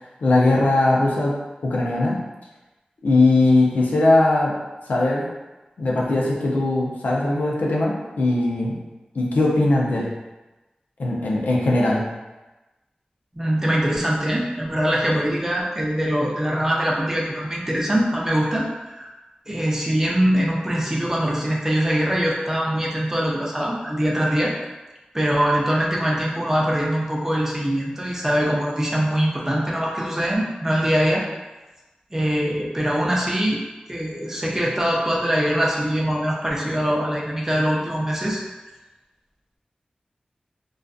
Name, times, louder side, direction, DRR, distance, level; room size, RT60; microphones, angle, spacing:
voice 1, 0.2-2.2 3.0-4.6 4.9-5.3 5.8-8.8 9.1-10.1 11.0-12.0, left 2 dB, 90° left, -3 dB, 0.5 m, -20 dB
voice 2, 13.3-19.1 19.5-24.5 25.1-31.2 32.1-33.6 33.9-38.4, equal, 15° right, -3 dB, 0.5 m, -23 dB
2.5 x 2.3 x 2.3 m, 1.1 s
wide cardioid pair, 85°, 3 cm